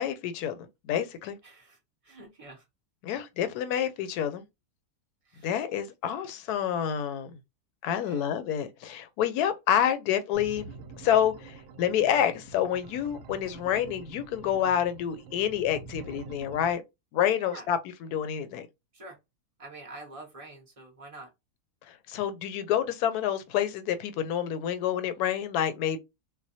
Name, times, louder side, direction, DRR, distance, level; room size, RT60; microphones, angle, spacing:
voice 1, 0.0-1.4 3.0-4.4 5.4-7.3 7.8-10.7 11.0-16.8 17.1-17.8 18.1-18.7 21.9-26.0, left 9 dB, 75° left, 1.1 m, -28 dB
voice 2, 1.4-1.8 2.0-2.7 5.2-5.5 7.9-8.3 17.4-17.7 18.9-19.2 19.6-21.3, right 2 dB, 35° right, 0.6 m, -46 dB
sound 1, 10.3-16.7, right 4 dB, 70° right, 0.9 m, -46 dB
4.1 x 2.2 x 2.6 m
omnidirectional pair, 1.7 m